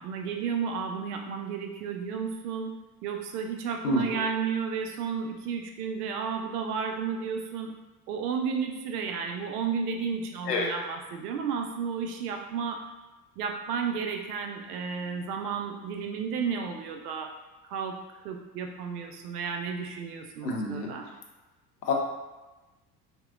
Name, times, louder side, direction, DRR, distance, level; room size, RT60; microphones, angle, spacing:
voice 1, 0.0-2.7 3.0-7.7 8.1-12.8 13.4-17.3 17.6-18.0 18.2-21.1, right 6 dB, 70° right, 3 dB, 0.5 m, -32 dB
voice 2, 3.8-4.3 10.5-10.7 20.4-20.9 21.8-21.9, left 2 dB, 80° left, 0 dB, 0.7 m, -28 dB
4.1 x 2.1 x 2.4 m, 1.1 s
figure-of-eight pair, 65°, 47 cm